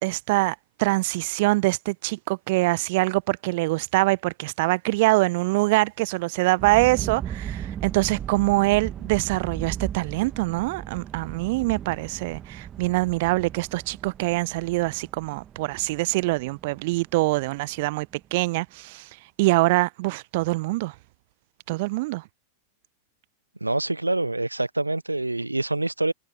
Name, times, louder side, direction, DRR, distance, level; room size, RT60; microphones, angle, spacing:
voice 1, 0.0-19.1 19.4-20.9 21.7-22.2, right 22 dB, 50° right, 1.0 m, -24 dB
sound 1, 6.6-18.1, right 9 dB, 25° right, 1.7 m, -37 dB
voice 2, 23.6-26.1, right 2 dB, 85° right, 0.8 m, -26 dB
figure-of-eight pair, 90°, 0 cm